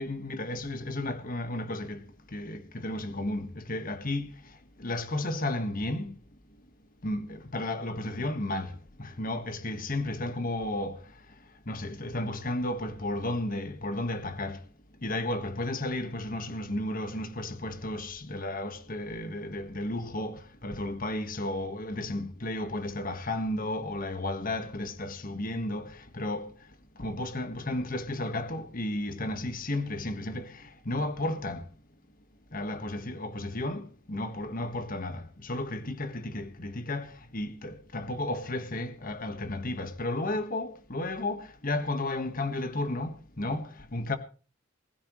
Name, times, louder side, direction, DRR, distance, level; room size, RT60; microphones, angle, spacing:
voice 1, 0.0-2.0 2.3-4.3 4.8-6.1 7.0-11.0 11.7-14.6 15.0-26.5 27.0-31.6 32.5-44.2, left 1 dB, 45° left, 1.6 m, -33 dB
20.5 x 14.5 x 3.2 m
head